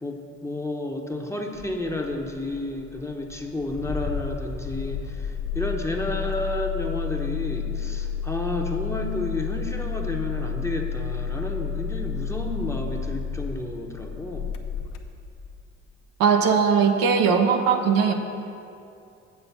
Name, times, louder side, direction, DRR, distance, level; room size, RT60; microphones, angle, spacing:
voice 1, 0.0-14.5, left 2 dB, 5° left, 1 dB, 1.0 m, -31 dB
Engine starting, 1.5-15.7, left 6 dB, 65° left, 0.7 m, -31 dB
voice 2, 16.2-18.1, right 6 dB, 70° right, 4 dB, 0.8 m, -19 dB
7.7 x 5.8 x 5.9 m, 2.6 s
hypercardioid pair, 55°, 36 cm